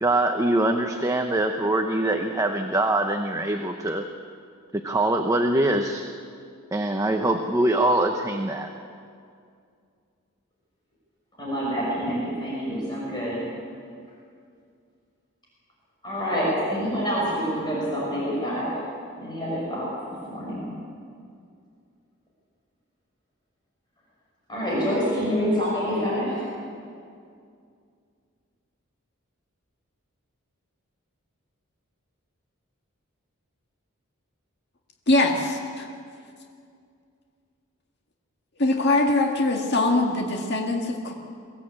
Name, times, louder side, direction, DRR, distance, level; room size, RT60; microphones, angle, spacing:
voice 1, 0.0-4.0 4.7-6.0 6.7-8.7, right 1 dB, 15° right, 4 dB, 0.9 m, -23 dB
voice 2, 11.4-13.4 16.0-18.8 19.2-19.9 20.2-20.7 24.5-26.5, equal, 20° left, -5 dB, 5.8 m, -27 dB
voice 3, 35.1-35.9 38.6-41.1, left 2 dB, 50° left, 1 dB, 2.0 m, -22 dB
23.0 x 16.5 x 8.7 m, 2.3 s
head